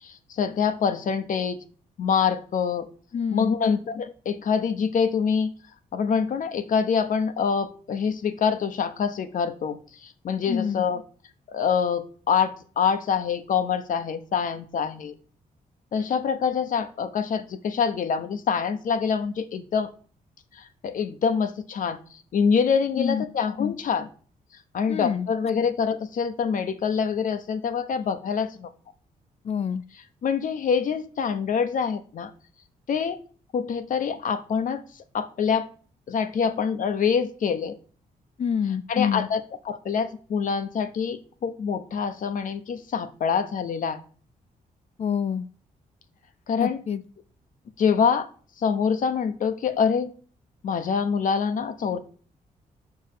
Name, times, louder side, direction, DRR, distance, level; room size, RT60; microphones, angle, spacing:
voice 1, 0.0-1.6 2.0-2.9 3.3-5.5 5.9-11.0 11.5-15.2 15.9-19.9 20.5-22.0 22.3-24.1 24.7-28.7 30.2-32.3 32.9-33.2 33.5-34.8 35.1-35.7 36.1-37.8 38.9-44.0 46.5-46.8 47.8-48.3 48.6-50.1 50.6-52.0, left 6 dB, 60° left, 10 dB, 0.9 m, -25 dB
voice 2, 3.1-3.6 10.5-10.9 23.0-23.2 23.6-23.7 24.9-25.3 29.4-29.8 38.4-39.3 45.0-45.5 46.6-47.0, left 7 dB, 45° left, 12 dB, 0.5 m, -27 dB
6.6 x 4.8 x 6.7 m, 0.43 s
cardioid pair, 95°, 15 cm